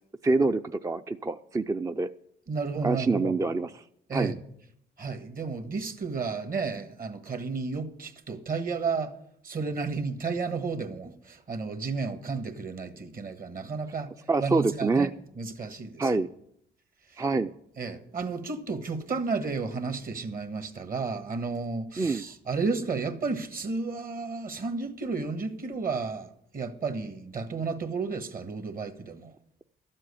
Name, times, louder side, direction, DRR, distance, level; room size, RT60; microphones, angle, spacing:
voice 1, 0.2-2.1 2.8-3.7 4.1-4.3 14.3-15.1 16.0-16.3 17.2-17.5 22.0-22.2, right 3 dB, 15° right, 0.4 m, -26 dB
voice 2, 2.5-3.3 4.1-4.4 5.0-9.1 9.4-15.1 15.3-16.1 17.1-17.2 17.8-29.3, right 4 dB, 45° right, 1.6 m, -32 dB
12.5 x 7.6 x 8.5 m
cardioid pair, 90°, 20 cm